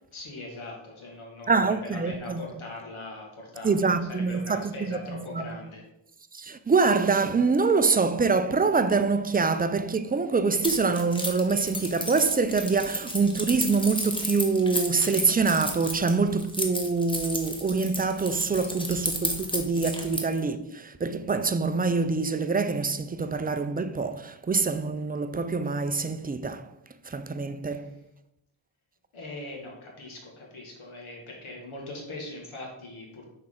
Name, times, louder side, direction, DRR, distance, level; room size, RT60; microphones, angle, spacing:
voice 1, 0.1-5.8 27.8-27.9 29.1-33.2, left 2 dB, 75° left, 1.7 m, -41 dB
voice 2, 1.5-2.5 3.6-5.6 6.3-26.7 27.1-27.9, right 4 dB, 20° right, 0.3 m, -25 dB
Keys jangling, 10.6-20.4, left 1 dB, 10° left, 1.1 m, -33 dB
6.0 x 4.4 x 3.8 m
cardioid pair, 80°, 50 cm